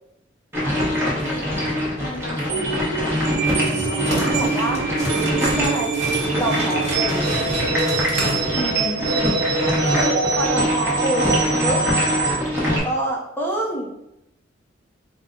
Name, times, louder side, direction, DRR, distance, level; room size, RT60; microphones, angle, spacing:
sound 1, 0.5-12.8, left 1 dB, 15° right, 1.0 m, -24 dB
voice 1, 1.2-1.7 2.0-4.4 8.5-9.4, left 1 dB, 55° left, -5 dB, 0.7 m, -33 dB
sound 2, 2.5-12.4, right 4 dB, 55° right, 0.4 m, -25 dB
sound 3, 3.4-9.0, right 1 dB, 40° right, 1.3 m, -30 dB
voice 2, 3.9-4.8 5.2-5.9 6.3-7.3 9.8-11.8 12.7-13.9, right 1 dB, 10° left, -1 dB, 0.7 m, -27 dB
4.2 x 2.1 x 3.7 m, 0.81 s
head